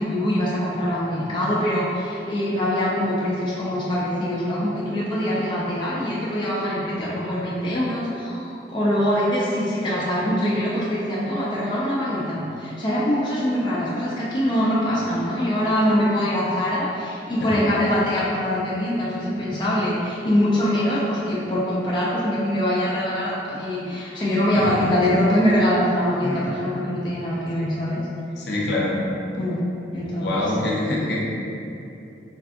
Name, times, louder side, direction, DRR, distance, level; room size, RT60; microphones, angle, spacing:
voice 1, 0.0-28.0 29.4-29.6 29.9-30.5, equal, 25° left, -7 dB, 0.3 m, -23 dB
voice 2, 26.2-26.5 28.4-29.0 30.0-31.2, left 1 dB, 75° left, -4 dB, 0.5 m, -25 dB
3.2 x 2.6 x 2.4 m, 2.8 s
head